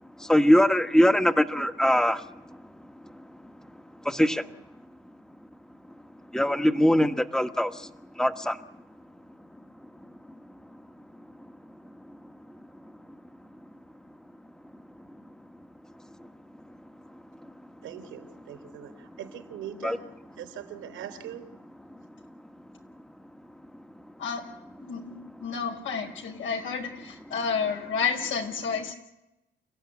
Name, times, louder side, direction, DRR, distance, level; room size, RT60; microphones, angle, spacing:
voice 1, 0.2-2.3 4.0-4.5 6.3-7.9 8.2-8.6 19.8-20.0, equal, 5° left, 9 dB, 1.5 m, -22 dB
voice 2, 17.8-20.1 20.3-21.5, right 10 dB, 90° right, 7 dB, 3.4 m, -41 dB
voice 3, 24.8-28.9, left 6 dB, 75° left, 4 dB, 5.1 m, -30 dB
29.0 x 15.0 x 9.9 m, 0.94 s
cardioid pair, 90°, 20 cm